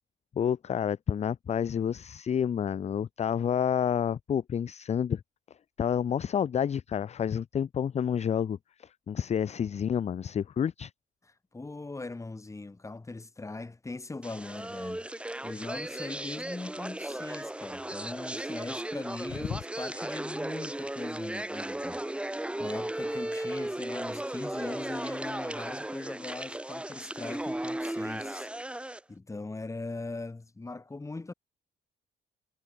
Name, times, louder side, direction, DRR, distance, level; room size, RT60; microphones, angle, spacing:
voice 1, 0.4-5.2 5.8-10.9 19.5-19.6, left 8 dB, 35° left, 0.4 m, -29 dB
voice 2, 11.5-22.0 22.6-28.5 29.1-31.3, left 3 dB, 15° left, 1.0 m, -40 dB
sound 1, 14.2-29.0, right 1 dB, 5° right, 0.7 m, -36 dB
cardioid pair, 90°, 20 cm